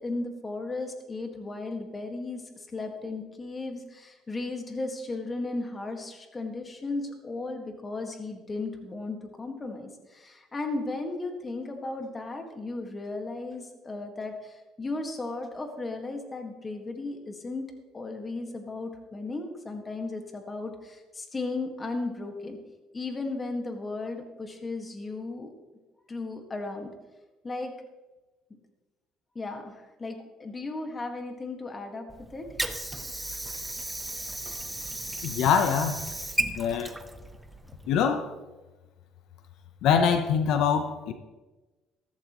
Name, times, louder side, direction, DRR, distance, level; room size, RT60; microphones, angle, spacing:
voice 1, 0.0-17.6 17.9-22.6 22.9-25.5 26.1-26.9 27.4-27.7 29.4-32.5, left 3 dB, 20° left, 4 dB, 1.8 m, -35 dB
Water / Sink (filling or washing), 32.1-38.1, right 1 dB, 10° right, 0.8 m, -35 dB
voice 2, 35.2-36.0 36.6-36.9 37.9-38.3 39.8-41.1, left 7 dB, 70° left, 7 dB, 0.9 m, -24 dB
14.0 x 13.5 x 3.1 m, 1.2 s
cardioid pair, 125°, 0 cm